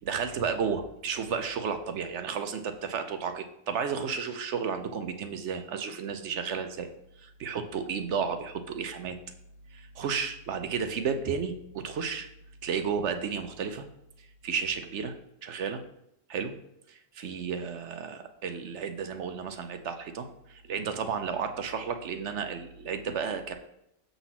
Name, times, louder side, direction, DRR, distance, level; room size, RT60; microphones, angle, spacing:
voice 1, 0.0-6.9 7.4-9.2 9.7-12.3 12.6-13.8 14.4-15.1 15.4-15.8 16.3-16.5 16.9-23.5, right 6 dB, 60° right, 7 dB, 0.8 m, -32 dB
7.0 x 4.0 x 5.8 m, 0.81 s
omnidirectional pair, 1.5 m